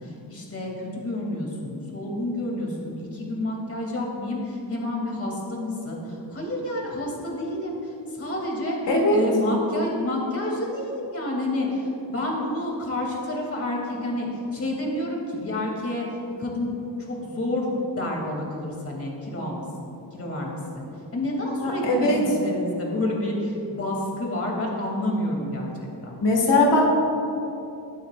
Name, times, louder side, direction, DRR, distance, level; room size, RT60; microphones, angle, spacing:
voice 1, 0.0-8.8 9.1-16.1 16.4-16.7 17.0-26.2, left 1 dB, 35° left, -2 dB, 2.7 m, -29 dB
voice 2, 8.9-9.2 21.6-22.2 26.2-26.8, left 2 dB, 80° left, -1 dB, 1.8 m, -20 dB
20.5 x 9.2 x 2.5 m, 2.9 s
cardioid pair, 115°, 42 cm